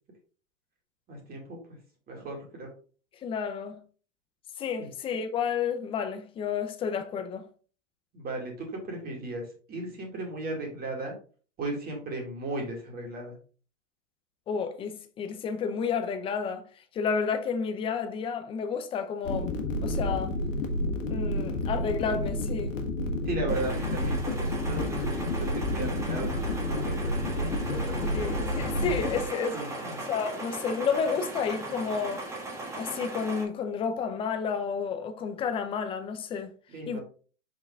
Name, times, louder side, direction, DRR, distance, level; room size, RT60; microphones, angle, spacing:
voice 1, 1.1-1.8 2.1-2.7 4.8-4.9 8.1-11.1 11.6-13.4 23.2-28.3 29.5-30.0 36.7-37.0, right 2 dB, 25° right, 2.3 m, -36 dB
voice 2, 3.2-3.8 4.6-7.5 14.5-16.6 16.9-19.6 19.8-20.4 21.1-22.8 28.1-32.2 32.8-36.5 36.9-37.0, left 6 dB, 15° left, 0.5 m, -31 dB
sound 1, 19.2-29.2, left 1 dB, 80° left, 1.5 m, -30 dB
sound 2, 23.5-33.4, right 2 dB, 10° right, 1.4 m, -38 dB
5.5 x 5.2 x 3.6 m
hypercardioid pair, 140°, 38 cm